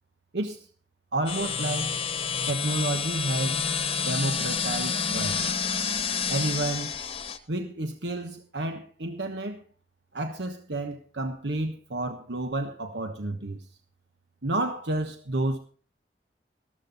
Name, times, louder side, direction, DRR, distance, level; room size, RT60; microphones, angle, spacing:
voice 1, 1.1-1.9 2.5-3.6 4.0-5.4 6.3-6.9 7.5-9.6 10.1-13.7 14.4-15.6, right 2 dB, 80° right, 1.2 m, -30 dB
sound 1, 1.3-7.4, left 6 dB, 30° left, 1.1 m, -29 dB
14.0 x 13.5 x 4.0 m
head